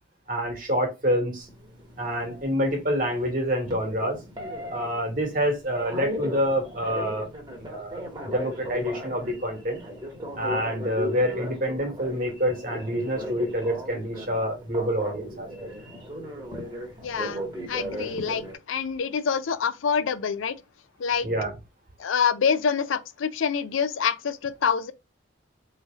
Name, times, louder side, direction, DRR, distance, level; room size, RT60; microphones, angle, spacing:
voice 1, 0.3-1.5 2.0-4.2 4.7-8.0 8.3-9.8 10.3-15.7 21.2-21.5, equal, 45° right, 1.5 m, -27 dB
Telephone, 1.4-18.5, equal, 25° right, 1.3 m, -37 dB
voice 2, 17.0-17.4 17.7-20.6 21.0-21.3 22.0-24.9, left 6 dB, 80° left, 0.5 m, -26 dB
4.0 x 3.2 x 2.4 m
head